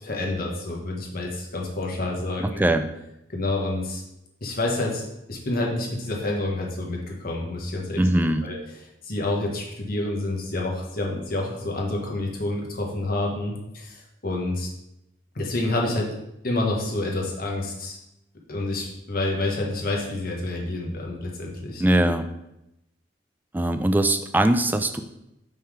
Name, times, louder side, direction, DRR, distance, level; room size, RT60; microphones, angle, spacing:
voice 1, 0.0-2.6 3.3-4.0 4.4-8.0 8.4-8.6 9.0-14.7 15.3-16.1 16.4-18.0 18.5-21.8, left 2 dB, 55° left, -1 dB, 1.2 m, -28 dB
voice 2, 2.4-2.8 8.0-8.4 21.8-22.3 23.5-25.0, right 1 dB, 10° right, 8 dB, 0.3 m, -21 dB
5.5 x 3.7 x 4.9 m, 0.87 s
head